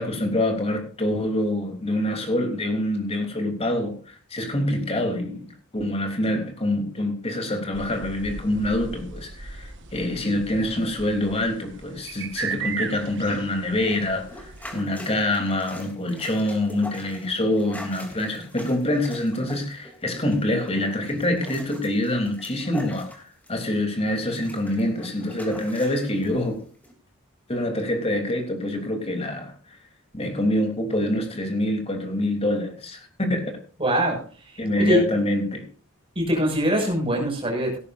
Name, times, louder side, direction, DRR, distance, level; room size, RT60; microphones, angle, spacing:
voice 1, 0.0-5.5 5.7-26.6 27.5-29.8 30.1-33.6 34.6-35.6, left 1 dB, 30° left, 4 dB, 3.3 m, -26 dB
sound 1, 7.7-14.8, right 5 dB, 55° right, 1.5 m, -37 dB
sound 2, 13.8-23.8 24.1-26.3 26.8-26.9, left 1 dB, 5° left, 3.0 m, -43 dB
voice 2, 33.8-35.0 36.1-37.8, equal, 25° right, 1 dB, 6.3 m, -23 dB
17.5 x 13.5 x 2.6 m, 0.37 s
head